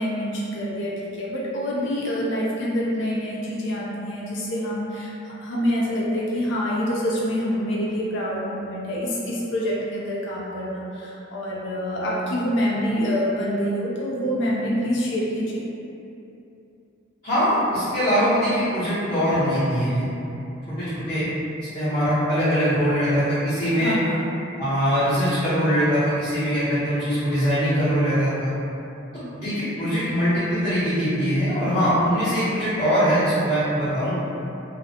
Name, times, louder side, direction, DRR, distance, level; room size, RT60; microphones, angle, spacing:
voice 1, 0.0-15.7 23.8-24.3, equal, 60° left, -5 dB, 0.5 m, -26 dB
voice 2, 17.2-20.0 20.7-21.2 21.7-24.0 24.6-28.5 29.1-34.1, equal, 40° left, -17 dB, 0.9 m, -22 dB
2.4 x 2.0 x 2.8 m, 2.8 s
head